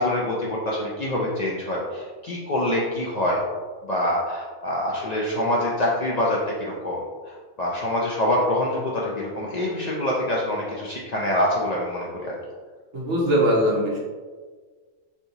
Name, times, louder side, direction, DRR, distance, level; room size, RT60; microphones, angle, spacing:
voice 1, 0.0-3.4 3.8-7.0 7.3-12.4, left 1 dB, 65° left, -5 dB, 0.4 m, -25 dB
voice 2, 12.9-14.0, equal, 75° right, -3 dB, 1.1 m, -21 dB
3.3 x 2.7 x 2.7 m, 1.5 s
omnidirectional pair, 1.2 m